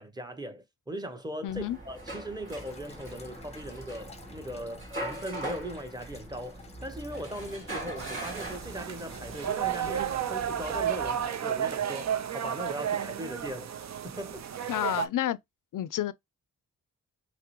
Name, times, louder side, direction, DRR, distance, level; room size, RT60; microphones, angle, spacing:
voice 1, 0.0-13.7 14.0-14.7, right 1 dB, 10° right, 0.9 m, -39 dB
voice 2, 1.4-1.8 14.7-15.4 15.7-16.1, left 12 dB, 65° left, 0.4 m, -30 dB
sound 1, 1.5-11.3, right 1 dB, 35° right, 2.7 m, -42 dB
sound 2, 2.5-10.1, left 2 dB, 20° left, 0.7 m, -49 dB
sound 3, 8.0-15.1, right 9 dB, 50° right, 0.5 m, -32 dB
5.8 x 2.1 x 3.0 m
cardioid pair, 85°, 34 cm